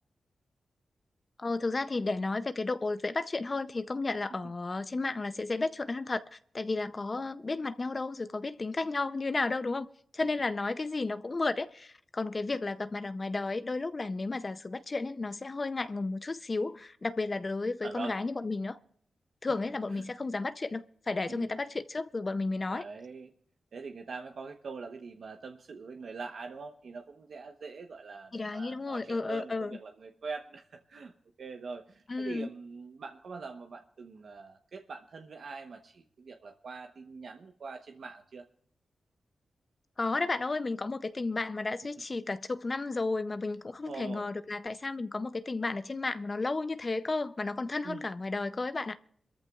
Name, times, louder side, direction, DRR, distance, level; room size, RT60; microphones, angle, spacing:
voice 1, 1.4-9.9 10.1-18.8 19.4-22.9 28.3-29.8 32.1-32.5 40.0-49.0, left 3 dB, 35° left, 0.5 m, -33 dB
voice 2, 17.8-18.1 19.9-20.0 21.3-21.5 22.7-23.3 23.7-31.1 31.4-38.5 43.9-44.3 47.8-48.1, right 4 dB, 70° right, 1.0 m, -43 dB
27.0 x 14.0 x 2.4 m
wide cardioid pair, 90°, 0 cm